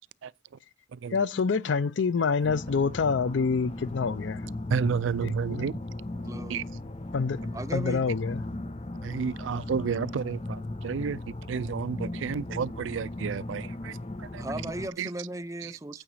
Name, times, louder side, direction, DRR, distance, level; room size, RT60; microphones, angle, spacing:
voice 1, 1.1-4.4 5.2-5.7 7.1-7.4 7.7-8.4, left 5 dB, 80° left, 0.5 m, -27 dB
sound 1, 2.4-14.9, left 2 dB, 30° left, 0.6 m, -37 dB
voice 2, 4.7-5.8 6.5-6.6 9.0-11.2 11.5-14.4 15.0-15.1 15.6-15.7, right 6 dB, 85° right, 0.4 m, -31 dB
voice 3, 6.2-6.6 7.5-8.0 14.4-16.0, right 1 dB, 15° right, 0.5 m, -36 dB
8.9 x 4.9 x 5.5 m
head